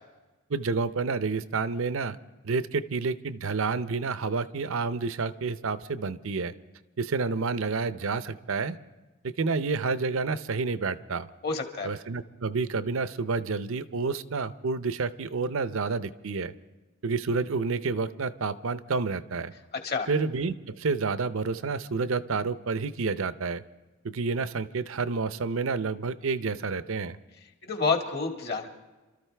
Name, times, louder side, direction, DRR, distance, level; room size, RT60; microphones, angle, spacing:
voice 1, 0.5-2.2 2.4-6.5 7.0-8.8 9.2-11.3 11.8-16.5 17.0-19.5 20.1-23.6 24.0-27.2, right 4 dB, 70° right, 13 dB, 0.6 m, -29 dB
voice 2, 11.4-11.9 19.8-20.1 27.6-28.7, left 4 dB, 45° left, 3 dB, 1.9 m, -28 dB
28.5 x 13.5 x 3.4 m, 1.2 s
head